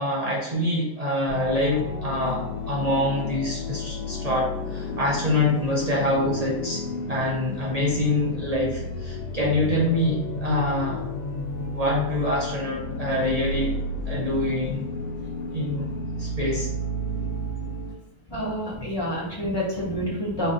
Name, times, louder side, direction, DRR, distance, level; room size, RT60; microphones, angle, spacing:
voice 1, 0.0-11.0 11.7-13.8 14.1-14.9 15.5-15.9 16.2-16.7, left 1 dB, 80° right, -4 dB, 0.3 m, -25 dB
sound 1, 1.3-17.9, left 1 dB, 80° left, 1.2 m, -32 dB
voice 2, 18.3-20.5, equal, 15° left, -6 dB, 1.2 m, -28 dB
4.8 x 2.6 x 3.7 m, 0.87 s
omnidirectional pair, 1.7 m